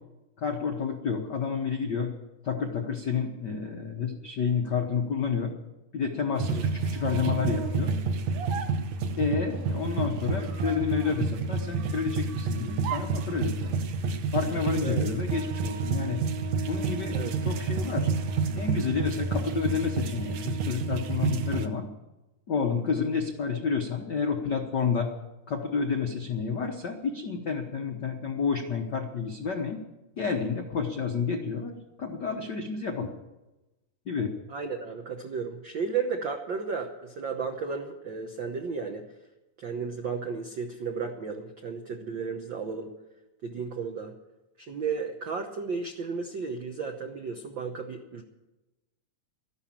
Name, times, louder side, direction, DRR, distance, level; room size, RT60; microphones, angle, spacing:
voice 1, 0.4-2.1 2.4-5.5 5.9-7.9 9.2-13.8 14.3-16.2 16.7-18.1 18.5-21.9 22.5-25.1 25.5-29.8 30.2-31.7 32.0-33.1 34.1-34.3, left 6 dB, 75° left, 3 dB, 0.9 m, -30 dB
sound 1, 6.4-21.7, right 4 dB, 65° right, 2.0 m, -29 dB
voice 2, 34.5-39.1 39.6-42.9 43.4-44.1 44.6-48.2, right 5 dB, 80° right, 4 dB, 1.0 m, -34 dB
13.5 x 11.5 x 7.4 m, 1.0 s
omnidirectional pair, 3.7 m